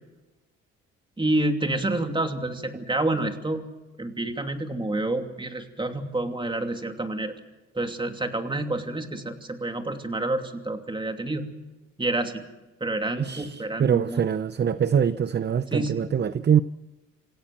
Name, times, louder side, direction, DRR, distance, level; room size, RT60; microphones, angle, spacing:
voice 1, 1.2-3.7 4.0-7.3 7.7-11.5 12.0-12.4 12.8-14.2 15.7-16.1, right 2 dB, 15° right, 2.8 m, -28 dB
voice 2, 13.2-16.6, right 8 dB, 35° right, 0.7 m, -24 dB
27.5 x 16.0 x 7.6 m
cardioid pair, 90°, 30 cm